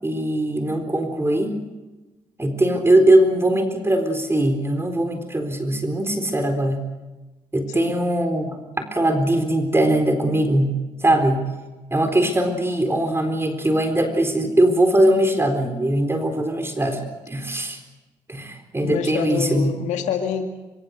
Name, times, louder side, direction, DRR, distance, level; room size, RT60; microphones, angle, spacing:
voice 1, 0.0-1.6 2.4-6.9 7.5-11.5 11.9-17.8 18.3-19.8, right 1 dB, 20° right, 5 dB, 4.1 m, -21 dB
voice 2, 18.8-20.4, left 8 dB, 85° left, 4 dB, 2.2 m, -26 dB
24.0 x 24.0 x 6.6 m, 1.1 s
supercardioid pair, 60°, 12 cm